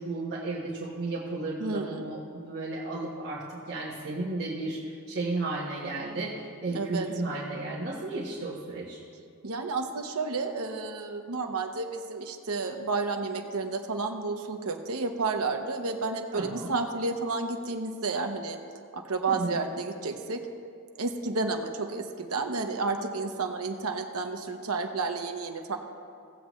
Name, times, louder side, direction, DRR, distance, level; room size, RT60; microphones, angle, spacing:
voice 1, 0.0-9.0 16.3-16.7 19.3-19.6, right 2 dB, 55° right, -6 dB, 1.3 m, -34 dB
voice 2, 1.6-2.1 6.7-7.1 9.4-18.6 18.9-20.4 21.0-25.8, right 3 dB, 70° right, 5 dB, 0.9 m, -31 dB
17.5 x 7.7 x 3.1 m, 2.4 s
head